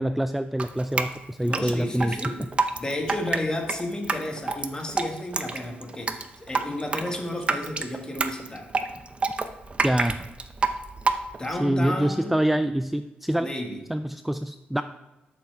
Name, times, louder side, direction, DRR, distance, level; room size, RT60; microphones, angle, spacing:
voice 1, 0.0-2.5 9.8-10.2 11.5-13.5 13.9-14.8, right 1 dB, 5° right, 10 dB, 0.3 m, -26 dB
Drip, 0.6-11.6, right 3 dB, 35° right, 0.7 m, -28 dB
voice 2, 1.4-2.4 2.8-8.7 11.4-12.4 13.4-13.8, left 1 dB, 20° left, 2 dB, 1.9 m, -32 dB
12.5 x 7.2 x 3.6 m, 1.0 s
cardioid pair, 90°, 4 cm